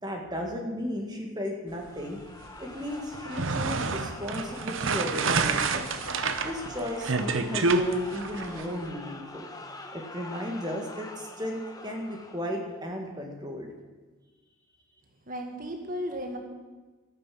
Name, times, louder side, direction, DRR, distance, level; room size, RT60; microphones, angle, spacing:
voice 1, 0.0-2.2 2.6-5.9 6.4-9.5 9.9-13.7, equal, 20° right, 2 dB, 1.8 m, -35 dB
sound 1, 1.8-12.7, left 2 dB, 15° left, 1.1 m, -44 dB
sound 2, 3.1-8.6, right 4 dB, 60° right, 0.9 m, -28 dB
voice 2, 15.3-16.4, equal, 40° right, 3 dB, 1.9 m, -34 dB
13.5 x 9.4 x 7.7 m, 1.2 s
head